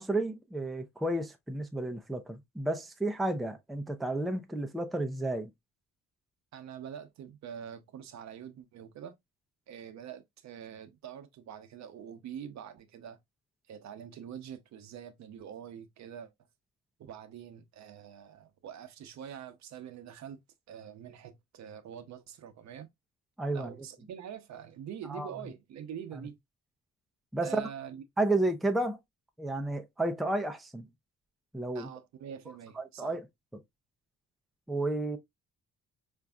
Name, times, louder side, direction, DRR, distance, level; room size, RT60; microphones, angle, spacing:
voice 1, 0.0-5.5 23.4-23.7 25.1-25.3 27.3-27.6 28.2-29.0 29.4-30.9 31.5-31.9 32.8-33.2 34.7-35.2, right 2 dB, ahead, 0.4 m, -31 dB
voice 2, 6.5-9.2 9.7-13.2 13.7-16.3 17.0-20.4 20.7-22.9 23.5-26.4 27.4-28.0 31.7-33.2, right 9 dB, 65° right, 0.7 m, -45 dB
4.6 x 2.5 x 2.2 m
cardioid pair, 90°, 30 cm